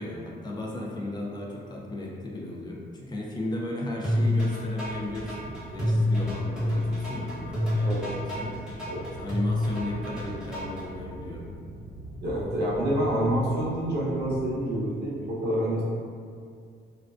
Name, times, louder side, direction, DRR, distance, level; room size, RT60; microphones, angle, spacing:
voice 1, 0.0-11.4, left 1 dB, 20° left, -2 dB, 0.4 m, -35 dB
sound 1, 4.0-10.8, left 1 dB, 5° right, 1.0 m, -27 dB
sound 2, 4.8-14.6, right 1 dB, 75° left, 1.0 m, -43 dB
voice 2, 12.2-15.8, right 1 dB, 55° right, -6 dB, 0.7 m, -27 dB
2.3 x 2.3 x 2.4 m, 2.2 s
cardioid pair, 90°, 20 cm